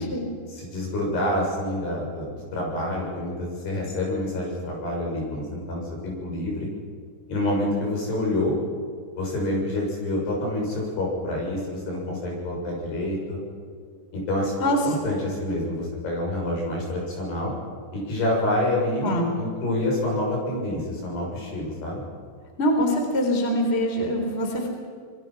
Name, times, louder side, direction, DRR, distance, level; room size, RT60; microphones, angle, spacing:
voice 1, 0.5-6.7 7.3-8.6 9.2-13.4 14.1-17.5 17.9-19.1 19.4-22.0, left 1 dB, 70° left, -1 dB, 8.9 m, -27 dB
voice 2, 22.6-24.7, equal, 15° left, 3 dB, 3.5 m, -24 dB
25.5 x 22.0 x 6.0 m, 2.2 s
omnidirectional pair, 4.8 m